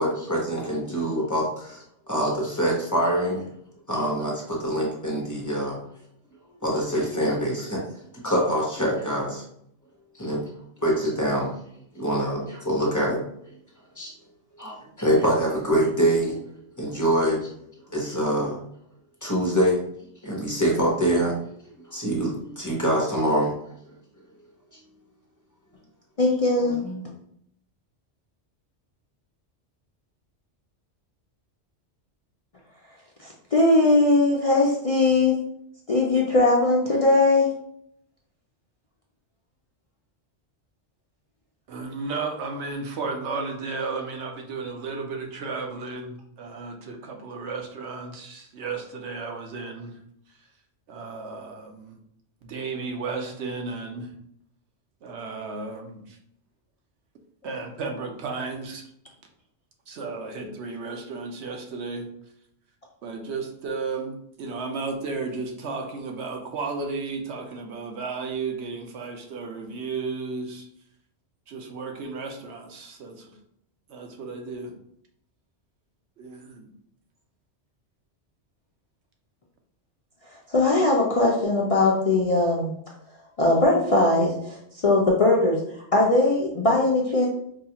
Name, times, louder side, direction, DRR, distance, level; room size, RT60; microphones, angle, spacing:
voice 1, 0.0-3.4 3.9-5.8 6.6-7.8 8.1-9.4 10.2-10.4 10.8-11.5 11.9-13.5 14.0-14.1 14.6-16.4 16.8-17.5 17.9-18.6 19.2-19.8 20.2-21.3 21.9-23.5 26.8-27.0, equal, 20° left, -3 dB, 0.8 m, -25 dB
voice 2, 26.2-26.8 33.2-35.4 35.9-37.5 80.5-82.7 83.4-84.6 84.8-85.6 85.9-87.3, left 2 dB, 45° left, -3 dB, 0.5 m, -20 dB
voice 3, 41.7-50.0 50.9-52.0 52.4-54.1 55.0-56.2 57.4-58.9 59.9-62.1 63.0-70.7 71.5-73.4 73.9-74.7 76.2-76.6, right 4 dB, 80° right, 3 dB, 0.9 m, -33 dB
4.7 x 2.3 x 2.8 m, 0.70 s
omnidirectional pair, 1.2 m